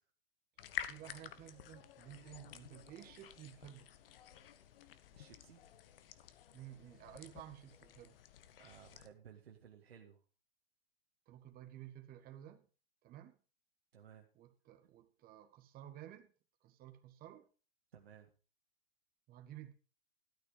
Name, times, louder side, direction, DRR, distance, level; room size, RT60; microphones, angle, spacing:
sound 1, 0.6-9.1, left 10 dB, 65° left, 1.3 m, -50 dB
voice 1, 0.9-3.9 6.5-8.2 11.3-12.7 13.0-13.4 14.3-16.3 16.6-17.5 19.3-19.7, right 12 dB, 30° right, 1.5 m, -53 dB
voice 2, 5.1-5.6 8.6-10.2 13.9-14.3 17.9-18.3, right 8 dB, 85° right, 2.0 m, -58 dB
13.0 x 8.8 x 4.9 m
hypercardioid pair, 125°, 30 cm